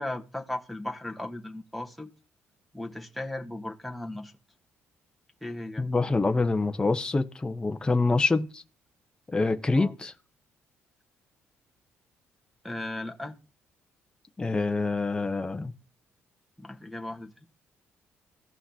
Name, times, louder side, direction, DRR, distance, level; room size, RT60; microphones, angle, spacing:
voice 1, 0.0-2.1 2.7-4.3 5.4-5.9 9.8-9.9 12.6-13.4 16.6-17.3, left 1 dB, ahead, 1.2 m, -36 dB
voice 2, 5.8-8.6 9.3-10.1 14.4-15.7, left 3 dB, 15° left, 0.8 m, -26 dB
16.0 x 5.6 x 2.8 m
cardioid pair, 95°, 5 cm